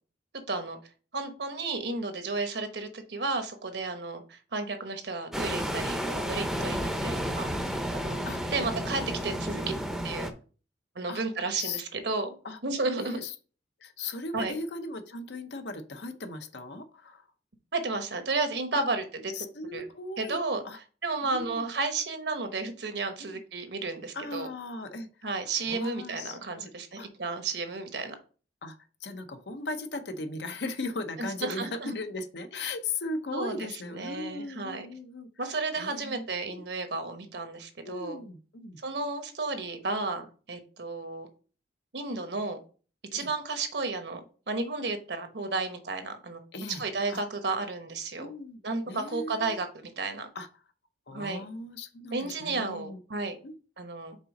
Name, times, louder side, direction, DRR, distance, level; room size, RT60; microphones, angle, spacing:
voice 1, 0.5-0.8 1.1-7.5 7.9-8.2 8.5-9.7 10.0-10.3 10.9-12.3 12.6-13.2 14.3-14.5 17.7-19.0 19.7-19.9 20.2-20.6 21.0-24.5 25.2-28.2 31.2-32.0 33.3-34.9 35.4-38.2 38.8-41.3 41.9-42.6 43.1-46.4 46.8-48.3 48.6-50.3 51.1-51.4 52.1-53.4 53.8-54.2, right 3 dB, 70° right, 1.1 m, -32 dB
sound 1, 5.3-10.3, equal, ahead, 0.6 m, -32 dB
voice 2, 9.5-9.8 11.1-11.2 11.6-11.8 12.4-12.6 13.0-13.3 13.8-17.3 18.7-18.8 19.3-20.4 20.6-20.8 21.2-21.7 23.2-23.4 24.1-26.7 27.0-27.1 28.6-28.8 29.0-31.7 31.9-35.3 35.8-36.6 37.8-38.8 43.1-43.3 46.5-47.2 48.2-48.6 48.9-49.6 50.3-50.5 51.1-53.0 53.4-53.6, left 2 dB, 75° left, 0.8 m, -38 dB
5.3 x 4.0 x 5.2 m
head